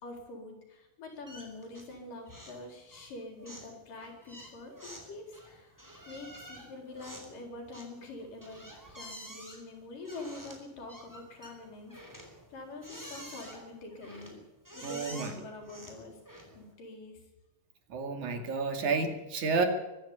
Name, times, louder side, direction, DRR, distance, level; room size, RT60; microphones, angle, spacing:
voice 1, 0.0-14.4 14.7-17.2, left 2 dB, 90° left, 3 dB, 5.8 m, -46 dB
sound 1, 1.3-2.0 2.3-2.6 2.9-16.7, equal, 5° right, 4.3 m, -49 dB
voice 2, 14.8-15.3 17.9-19.7, right 4 dB, 65° right, 6 dB, 3.8 m, -30 dB
23.5 x 11.0 x 9.8 m, 1.0 s
omnidirectional pair, 3.7 m